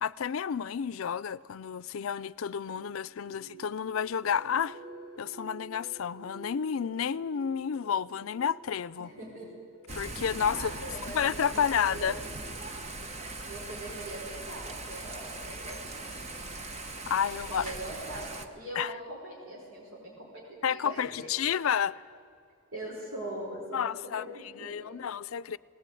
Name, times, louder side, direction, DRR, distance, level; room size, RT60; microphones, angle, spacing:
voice 1, 0.0-4.8 5.2-9.1 9.9-10.7 11.1-12.2 17.1-17.7 18.8-18.9 20.6-22.0 23.7-24.3 24.6-25.6, left 7 dB, 80° left, 0.4 m, -30 dB
sound 1, 2.7-12.8, right 2 dB, 55° right, 4.3 m, -51 dB
voice 2, 9.0-9.5 10.5-12.2 13.5-16.1 17.3-21.0 22.7-24.9, right 1 dB, 75° right, 5.2 m, -42 dB
Thunder / Rain, 9.9-18.5, right 2 dB, 30° right, 1.1 m, -40 dB
19.5 x 19.0 x 9.2 m
head